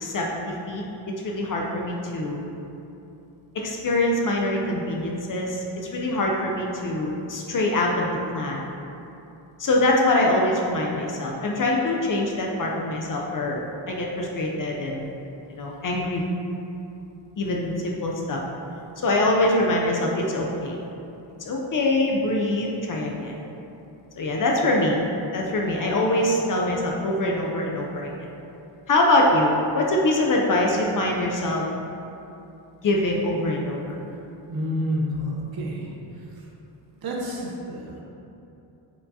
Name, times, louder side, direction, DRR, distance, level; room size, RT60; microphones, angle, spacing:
voice 1, 0.0-0.8 1.2-2.4 3.5-8.1 8.3-8.6 9.6-13.6 13.9-15.0 15.5-16.2 17.4-18.4 19.0-20.8 21.5-23.3 24.2-25.0 25.3-28.1 28.9-31.6 32.8-34.0, left 1 dB, 45° left, -1 dB, 0.5 m, -24 dB
voice 2, 34.5-35.8 37.0-38.0, equal, 50° right, -2 dB, 0.7 m, -29 dB
4.6 x 3.6 x 2.7 m, 2.8 s
wide cardioid pair, 135°, 46 cm